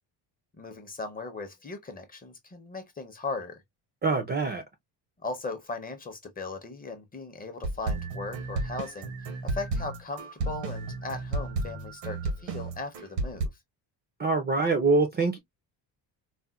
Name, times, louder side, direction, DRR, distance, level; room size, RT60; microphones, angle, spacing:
voice 1, 0.6-3.6 5.2-9.1 9.4-13.5, left 3 dB, 20° left, 0.6 m, -38 dB
voice 2, 4.0-4.6 14.2-15.4, right 3 dB, 25° right, 0.4 m, -24 dB
sound 1, 7.6-13.5, right 2 dB, 85° right, 1.1 m, -32 dB
4.1 x 2.1 x 2.2 m
cardioid pair, 160°, 43 cm